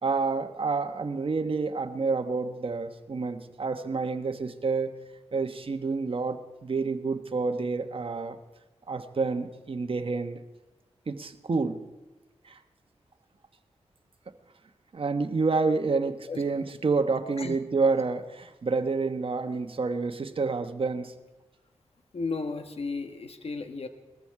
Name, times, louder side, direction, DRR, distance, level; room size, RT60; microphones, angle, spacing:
voice 1, 0.0-4.9 5.3-8.4 8.9-10.4 11.1-11.8 12.4-12.6 14.9-21.1, right 4 dB, 50° right, 7 dB, 1.2 m, -28 dB
voice 2, 22.1-23.9, left 4 dB, 60° left, 7 dB, 1.4 m, -34 dB
20.5 x 14.0 x 4.8 m, 1.1 s
wide cardioid pair, 80°, 12 cm